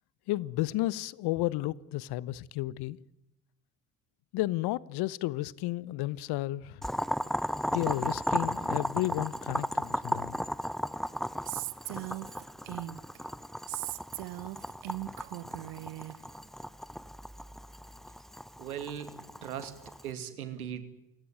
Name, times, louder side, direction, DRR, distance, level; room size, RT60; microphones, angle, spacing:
voice 1, 0.3-3.0 4.3-6.9 7.7-10.4, left 17 dB, 65° left, 1.1 m, -32 dB
Boiling, 6.8-20.1, equal, ahead, 0.9 m, -35 dB
Female speech woman speaking, 11.5-13.2 13.7-16.2, right 19 dB, 70° right, 1.5 m, -39 dB
voice 2, 18.6-20.8, right 9 dB, 90° right, 2.5 m, -39 dB
29.0 x 17.0 x 9.4 m
hypercardioid pair, 60°, 42 cm